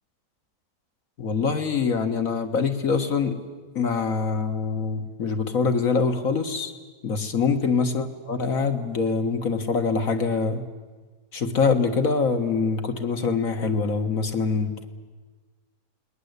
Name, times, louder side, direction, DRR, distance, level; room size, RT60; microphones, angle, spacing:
voice 1, 1.2-3.4 3.8-6.7 7.0-10.6 11.3-14.9, left 5 dB, 55° left, 7 dB, 2.1 m, -24 dB
28.5 x 21.0 x 8.3 m, 1.4 s
omnidirectional pair, 1.8 m